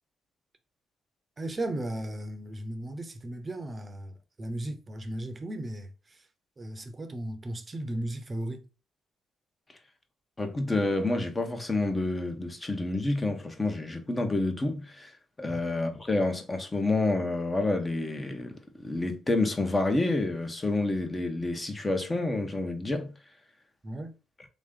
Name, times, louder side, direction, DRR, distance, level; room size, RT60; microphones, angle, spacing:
voice 1, 1.4-6.3 6.6-8.6 15.5-15.6 23.8-24.2, right 1 dB, 30° right, 0.8 m, -36 dB
voice 2, 10.4-23.1, left 2 dB, 20° left, 1.1 m, -29 dB
3.8 x 3.0 x 3.7 m
cardioid pair, 90°, 0 cm